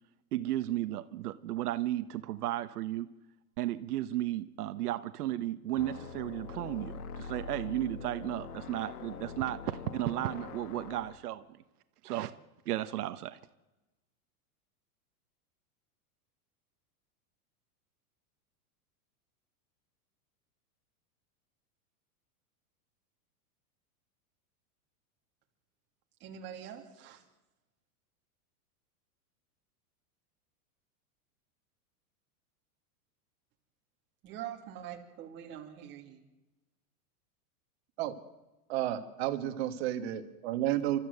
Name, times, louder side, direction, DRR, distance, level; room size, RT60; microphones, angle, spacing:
voice 1, 0.3-3.1 3.6-11.4 12.0-12.3 12.6-13.4, right 14 dB, 80° right, 1.2 m, -34 dB
sound 1, 5.8-11.2, left 5 dB, 75° left, 1.8 m, -44 dB
voice 2, 26.2-27.2 34.2-36.2, right 10 dB, 25° right, 2.7 m, -44 dB
voice 3, 38.7-41.0, right 13 dB, 40° right, 1.9 m, -32 dB
30.0 x 13.5 x 8.0 m
supercardioid pair, 180°, 45 cm